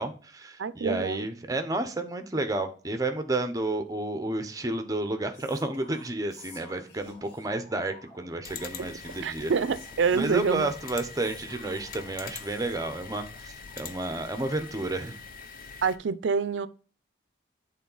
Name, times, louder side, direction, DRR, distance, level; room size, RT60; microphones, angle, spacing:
voice 1, 0.0-9.5 10.1-15.2, right 2 dB, 20° right, 0.7 m, -31 dB
voice 2, 0.6-1.3 9.2-10.7 15.8-16.7, right 5 dB, 75° right, 0.4 m, -26 dB
Whispering, 5.3-7.6 8.5-12.9, left 3 dB, 75° left, 1.9 m, -53 dB
sound 1, 6.4-13.4 13.7-14.6, left 1 dB, 30° left, 3.2 m, -55 dB
sound 2, 8.4-16.0, left 6 dB, 50° left, 0.5 m, -43 dB
8.5 x 3.7 x 3.9 m
head